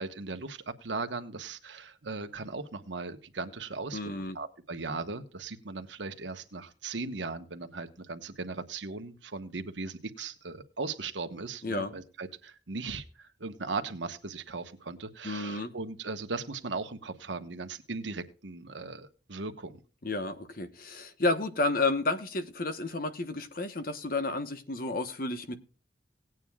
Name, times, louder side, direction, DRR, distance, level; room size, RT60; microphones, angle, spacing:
voice 1, 0.0-4.0 4.3-19.8, right 3 dB, 90° right, 1.2 m, -38 dB
voice 2, 3.9-4.4 11.6-11.9 15.2-15.7 20.0-25.6, left 2 dB, 50° left, 1.1 m, -31 dB
18.5 x 9.1 x 2.4 m
head